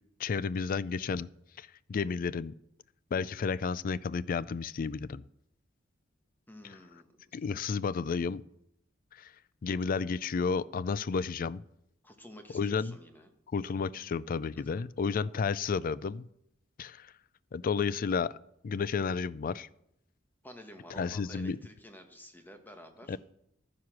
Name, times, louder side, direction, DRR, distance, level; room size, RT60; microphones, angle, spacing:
voice 1, 0.2-1.3 1.6-2.5 3.1-5.2 7.3-8.4 9.1-9.3 9.6-11.6 12.5-13.0 13.5-16.3 16.8-17.1 17.5-18.4 18.6-19.7 21.0-21.6 23.1-23.2, left 5 dB, 45° left, 19 dB, 0.4 m, -32 dB
voice 2, 6.5-7.4 12.0-13.3 14.6-14.8 20.4-23.2, equal, 10° left, 6 dB, 1.2 m, -51 dB
12.0 x 9.6 x 6.0 m, 0.79 s
head